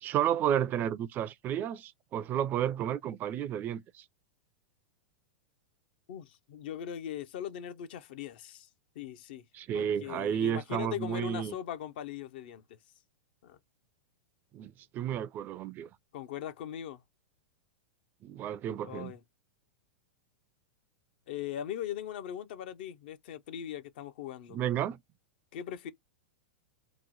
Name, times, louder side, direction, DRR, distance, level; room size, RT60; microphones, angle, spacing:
voice 1, 0.0-4.0 9.5-11.5 14.5-15.9 18.2-19.1 24.5-25.0, right 10 dB, 35° right, 0.3 m, -32 dB
voice 2, 6.1-8.7 9.0-9.4 9.7-12.6 13.4-13.6 16.1-17.0 18.8-19.2 21.3-24.6 25.5-25.9, left 10 dB, 65° left, 0.5 m, -40 dB
3.0 x 2.1 x 3.7 m
hypercardioid pair, 110°, 6 cm